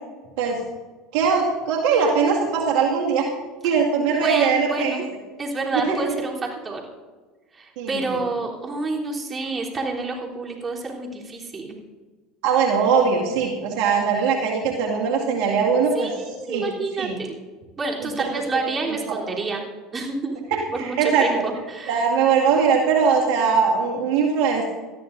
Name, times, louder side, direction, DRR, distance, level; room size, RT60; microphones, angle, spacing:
voice 1, 1.1-3.3 3.6-5.0 5.9-6.0 7.8-8.0 12.4-16.1 16.5-16.6 17.0-17.2 18.2-18.3 18.5-19.4 20.5-21.4 21.9-24.7, right 6 dB, 70° right, -1 dB, 2.1 m, -21 dB
voice 2, 4.2-5.0 5.4-6.3 6.6-6.8 7.5-11.7 15.9-17.3 17.8-19.6 19.9-20.4 20.7-22.0, right 3 dB, 30° right, -2 dB, 3.4 m, -28 dB
19.0 x 13.5 x 2.6 m, 1.3 s
hypercardioid pair, 90°, 0 cm